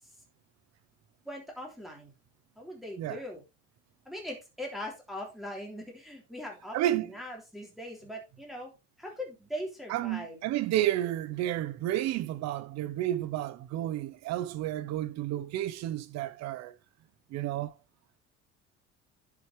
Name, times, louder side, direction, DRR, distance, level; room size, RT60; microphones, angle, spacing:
voice 1, 1.3-2.1 2.6-3.4 4.1-8.7 9.0-10.4, left 1 dB, ahead, 3.4 m, -41 dB
voice 2, 6.7-7.1 9.9-16.7 17.3-17.7, right 13 dB, 65° right, 1.1 m, -31 dB
10.0 x 6.3 x 3.5 m
cardioid pair, 160°, 29 cm